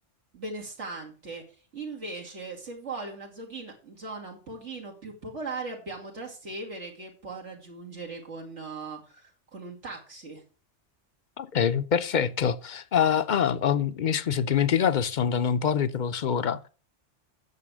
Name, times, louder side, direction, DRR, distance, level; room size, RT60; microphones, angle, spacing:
voice 1, 0.3-1.4 1.7-10.4, right 3 dB, 90° right, 2.7 m, -39 dB
voice 2, 11.4-16.7, left 8 dB, 50° left, 0.6 m, -25 dB
9.4 x 6.9 x 6.2 m
omnidirectional pair, 1.2 m